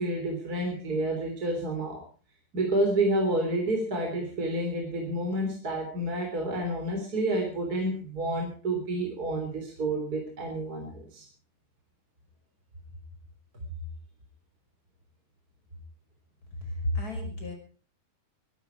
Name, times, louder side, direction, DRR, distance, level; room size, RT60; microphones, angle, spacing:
voice 1, 0.0-2.0 2.5-11.2, right 1 dB, 25° right, 2 dB, 3.9 m, -29 dB
voice 2, 16.6-17.5, left 1 dB, 25° left, 2 dB, 6.2 m, -31 dB
23.0 x 12.5 x 4.7 m, 0.37 s
omnidirectional pair, 3.8 m